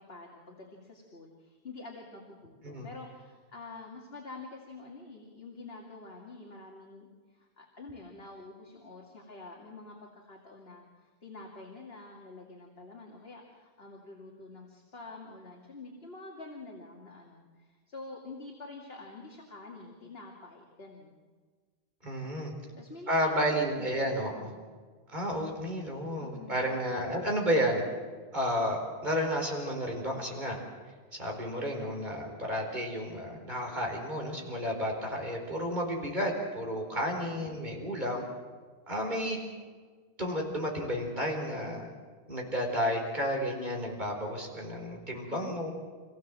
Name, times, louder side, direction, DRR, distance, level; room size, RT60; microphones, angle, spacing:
voice 1, 0.0-21.2 22.8-23.9 24.3-24.6 26.2-26.8 37.3-37.6 45.1-45.5, left 3 dB, 70° left, -1 dB, 2.7 m, -47 dB
voice 2, 22.0-22.5 23.1-24.5 25.1-27.8 28.3-30.6 31.1-38.2 38.9-39.4 40.2-41.9 42.3-45.7, equal, 45° right, 0 dB, 4.7 m, -32 dB
28.0 x 16.0 x 7.6 m, 1.5 s
omnidirectional pair, 1.1 m